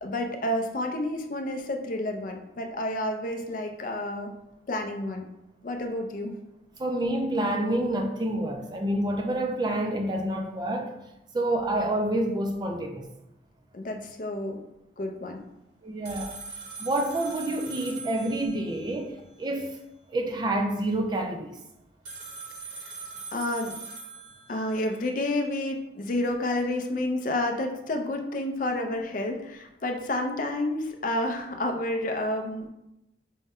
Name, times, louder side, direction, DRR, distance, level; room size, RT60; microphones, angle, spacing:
voice 1, 0.0-4.3 4.7-5.3 5.6-6.3 13.7-14.6 15.0-15.4 22.8-22.9 23.3-23.8 24.5-32.7, left 1 dB, 45° left, 0.4 m, -30 dB
voice 2, 6.8-10.9 11.3-13.1 15.8-16.4 16.8-19.8 20.1-21.5 28.9-29.0, right 1 dB, 25° right, 0.3 m, -28 dB
sound 1, 16.1-19.0 22.1-24.9, right 4 dB, 80° right, 0.9 m, -41 dB
5.2 x 2.1 x 3.6 m
head